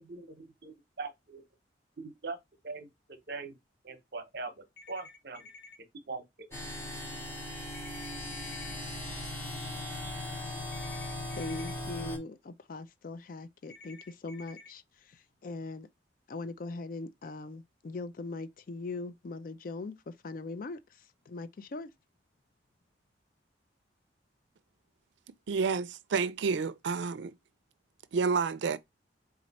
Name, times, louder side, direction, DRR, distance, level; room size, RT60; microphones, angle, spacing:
voice 1, 0.0-1.4 2.0-2.4 2.6-3.5 3.8-5.5 6.1-6.2, right 3 dB, 55° right, 0.8 m, -41 dB
sound 1, 4.8-5.8 7.7-8.7 10.7-11.7 13.7-14.7, left 3 dB, 70° left, 1.1 m, -51 dB
sound 2, 6.5-12.2, left 1 dB, 15° left, 0.8 m, -38 dB
voice 2, 11.3-14.8 15.1-15.9 16.3-20.8 21.3-21.9, left 3 dB, 50° left, 0.4 m, -40 dB
voice 3, 25.5-27.3 28.1-28.8, right 5 dB, 75° right, 0.4 m, -29 dB
4.3 x 2.4 x 4.0 m
head